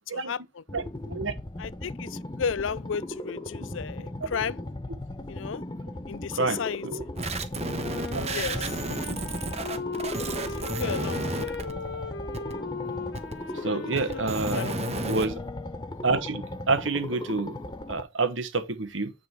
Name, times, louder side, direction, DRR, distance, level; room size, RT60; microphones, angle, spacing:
sound 1, 0.7-18.0, left 1 dB, 25° left, 0.8 m, -38 dB
voice 1, 0.7-1.3 6.3-7.0 7.9-8.0 9.0-9.2 13.6-14.7 15.1-15.4 16.0-17.6 17.9-19.1, right 3 dB, 80° right, 1.4 m, -28 dB
voice 2, 1.6-4.6 5.3-5.6 6.1-6.8 8.3-8.7 10.6-11.6 13.5-14.8, left 6 dB, 80° left, 0.5 m, -34 dB
sound 2, 7.2-11.7 12.3-12.5 13.1-13.3 14.0-15.3, right 2 dB, 35° right, 1.1 m, -32 dB
Wind instrument woodwind instrument, 7.6-15.9, left 3 dB, 60° left, 1.8 m, -37 dB
9.6 x 4.1 x 4.6 m
head